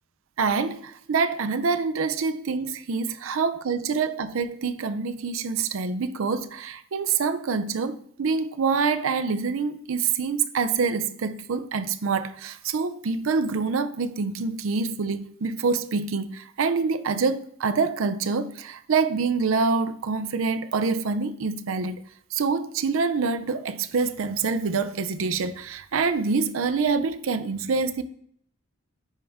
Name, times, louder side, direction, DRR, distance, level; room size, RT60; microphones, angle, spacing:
voice 1, 0.4-22.0 22.3-28.0, right 4 dB, 80° right, 0.5 m, -26 dB
10.0 x 3.6 x 3.4 m
head